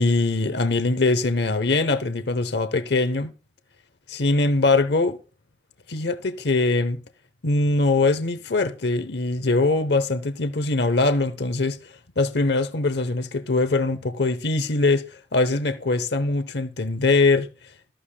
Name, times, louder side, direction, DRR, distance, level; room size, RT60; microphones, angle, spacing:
voice 1, 0.0-3.3 4.1-5.2 5.9-7.0 7.4-11.8 12.2-15.0 15.3-17.5, left 3 dB, 60° left, 0.9 m, -22 dB
14.0 x 13.5 x 2.2 m
head